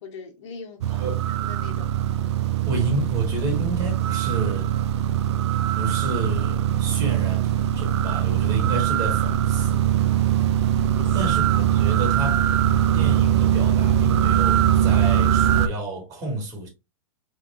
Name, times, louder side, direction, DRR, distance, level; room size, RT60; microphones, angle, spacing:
voice 1, 0.0-2.0 11.0-11.2, left 5 dB, 55° left, 1.9 m, -42 dB
sound 1, 0.8-15.7, right 10 dB, 55° right, 0.5 m, -21 dB
voice 2, 0.9-1.2 2.7-4.7 5.7-9.8 11.1-12.4 12.9-16.7, right 1 dB, 20° right, 2.5 m, -30 dB
5.0 x 3.8 x 2.7 m
hypercardioid pair, 145°, 17 cm